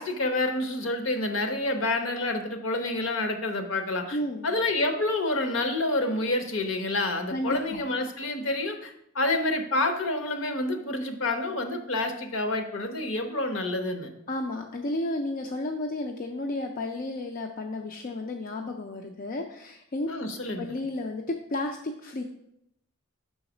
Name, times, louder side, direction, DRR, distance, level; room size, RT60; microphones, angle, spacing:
voice 1, 0.0-4.2 4.4-14.1 20.1-20.6, left 2 dB, 65° left, 6 dB, 0.8 m, -28 dB
voice 2, 4.1-4.5 7.3-7.8 14.3-20.1 20.6-22.2, left 2 dB, 40° left, 3 dB, 0.4 m, -32 dB
5.6 x 4.0 x 6.0 m, 0.76 s
head